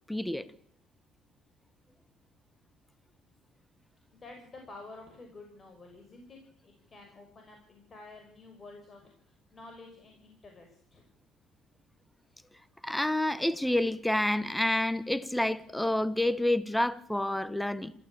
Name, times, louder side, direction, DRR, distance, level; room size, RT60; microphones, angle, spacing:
voice 1, 0.1-0.4 12.8-17.9, left 1 dB, 5° left, 1.2 m, -28 dB
voice 2, 4.1-11.0, left 2 dB, 30° left, 6.3 m, -50 dB
27.0 x 15.0 x 8.9 m
cardioid pair, 100°, 0 cm